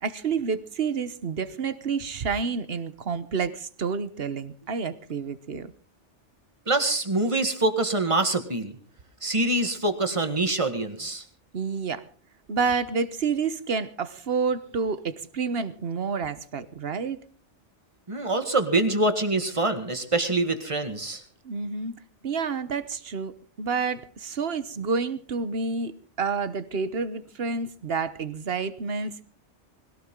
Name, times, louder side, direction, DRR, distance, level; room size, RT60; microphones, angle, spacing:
voice 1, 0.0-5.7 11.5-12.0 12.5-17.2 21.4-21.9 22.2-29.2, right 5 dB, 55° right, 14 dB, 1.3 m, -29 dB
voice 2, 6.7-8.7 9.2-11.2 18.1-21.2, right 2 dB, 25° right, 8 dB, 1.9 m, -25 dB
21.0 x 17.0 x 3.8 m, 0.42 s
omnidirectional pair, 1.2 m